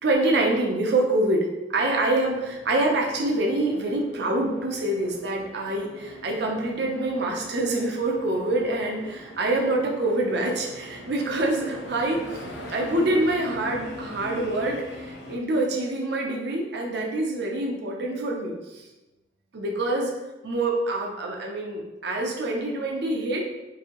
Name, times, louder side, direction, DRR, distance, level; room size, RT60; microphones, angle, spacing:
voice 1, 0.0-12.4 12.7-18.9 19.5-20.1 20.4-23.4, right 2 dB, 65° right, 0 dB, 0.7 m, -26 dB
sound 1, 1.8-15.4, left 1 dB, 70° left, 0.7 m, -42 dB
4.7 x 2.8 x 3.0 m, 1.0 s
head